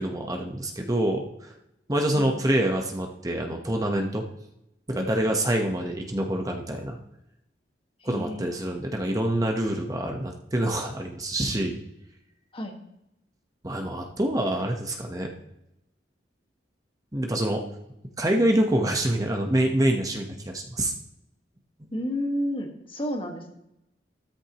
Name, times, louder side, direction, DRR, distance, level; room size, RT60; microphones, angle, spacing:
voice 1, 0.0-1.5 1.9-4.2 4.9-7.0 8.0-11.8 13.6-15.3 17.1-17.6 18.2-20.9, right 1 dB, 20° right, 2 dB, 1.2 m, -26 dB
voice 2, 8.0-8.6 12.5-12.7 21.9-23.5, equal, 30° left, 3 dB, 1.7 m, -31 dB
13.5 x 13.0 x 3.1 m, 0.84 s
head